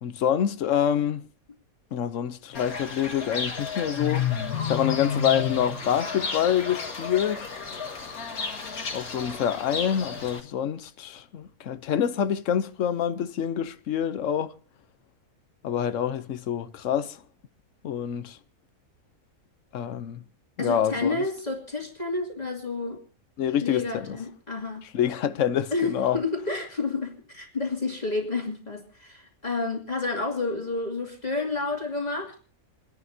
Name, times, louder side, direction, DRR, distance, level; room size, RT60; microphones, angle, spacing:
voice 1, 0.0-1.2 1.9-4.3 4.7-7.5 8.9-14.5 15.6-17.2 17.8-18.4 19.7-20.2 20.6-21.2 23.4-24.2 24.9-26.2, left 9 dB, 60° left, 1.1 m, -26 dB
Fowl / Bird, 2.5-10.4, left 6 dB, 85° left, 2.4 m, -31 dB
voice 2, 20.6-23.0 23.6-24.8 25.7-32.4, left 3 dB, 30° left, 2.5 m, -30 dB
29.5 x 11.0 x 2.8 m
omnidirectional pair, 1.5 m